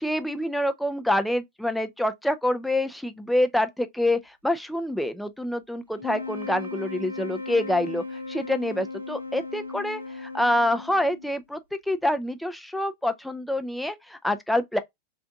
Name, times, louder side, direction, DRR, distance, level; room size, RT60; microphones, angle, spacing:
voice 1, 0.0-11.6 11.9-14.8, left 1 dB, ahead, 0.4 m, -26 dB
sound 1, 5.9-11.4, left 3 dB, 90° right, 0.5 m, -37 dB
3.3 x 2.6 x 3.6 m
figure-of-eight pair, 90°, 0 cm